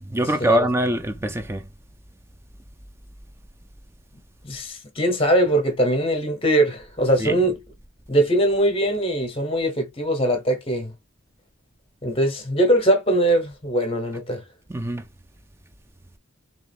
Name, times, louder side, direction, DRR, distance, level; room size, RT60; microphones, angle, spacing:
voice 1, 0.0-1.7 7.2-7.5 14.7-15.1, right 1 dB, 10° right, 0.3 m, -23 dB
voice 2, 4.4-7.6 8.1-10.9 12.0-14.4, right 1 dB, 25° left, 0.9 m, -21 dB
3.6 x 2.9 x 3.4 m
head